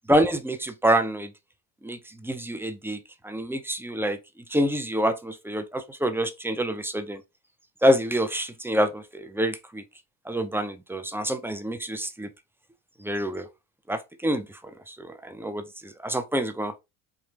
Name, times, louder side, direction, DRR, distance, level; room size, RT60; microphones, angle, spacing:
voice 1, 0.1-1.3 1.8-2.0 2.2-3.0 3.2-4.2 4.5-7.2 7.8-9.8 10.3-12.3 13.0-13.5 13.9-14.5 14.9-15.6 16.0-16.7, equal, 5° right, 0.5 m, -26 dB
4.4 x 2.3 x 3.1 m
supercardioid pair, 85°, 42 cm